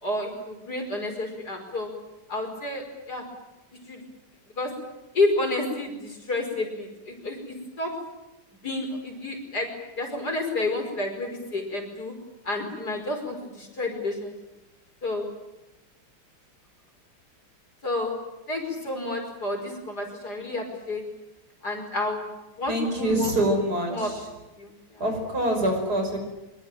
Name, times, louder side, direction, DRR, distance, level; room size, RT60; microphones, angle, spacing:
voice 1, 0.0-1.9 2.3-3.2 3.9-4.0 4.6-4.7 5.1-7.9 8.6-9.7 10.0-12.1 12.4-14.3 15.0-15.3 17.8-18.1 18.5-21.0 21.6-22.3 22.6-23.4 23.9-24.1 24.6-25.0, left 2 dB, 45° left, 4 dB, 5.7 m, -30 dB
voice 2, 22.7-24.3 25.0-26.2, right 1 dB, 45° right, 4 dB, 6.3 m, -25 dB
25.0 x 24.0 x 9.1 m, 0.98 s
omnidirectional pair, 2.4 m